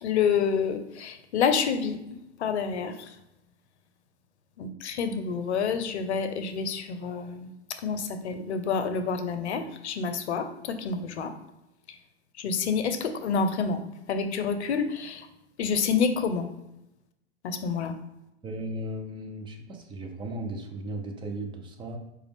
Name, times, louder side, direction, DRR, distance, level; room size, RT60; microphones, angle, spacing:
voice 1, 0.0-2.0 2.4-3.1 4.6-7.5 7.8-11.3 12.4-13.8 14.1-15.3 15.6-16.5 17.4-17.9, left 6 dB, 75° left, 9 dB, 0.6 m, -28 dB
voice 2, 18.4-22.0, right 1 dB, 15° right, 3 dB, 0.5 m, -36 dB
4.9 x 2.3 x 3.4 m, 0.88 s
hypercardioid pair, 110°, 34 cm